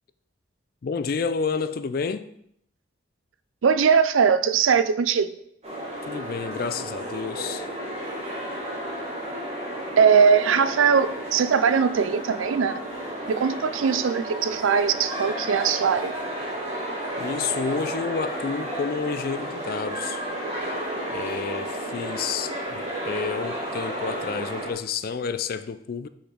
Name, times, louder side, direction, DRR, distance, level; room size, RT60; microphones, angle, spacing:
voice 1, 0.8-2.3 6.1-7.7 17.2-20.2 21.1-26.1, left 5 dB, 45° left, 0.3 m, -30 dB
voice 2, 3.6-5.3 10.0-12.8 13.3-16.1, right 6 dB, 75° right, 0.4 m, -20 dB
sound 1, 5.6-24.7, right 1 dB, 30° right, 1.5 m, -32 dB
6.3 x 5.9 x 3.9 m
head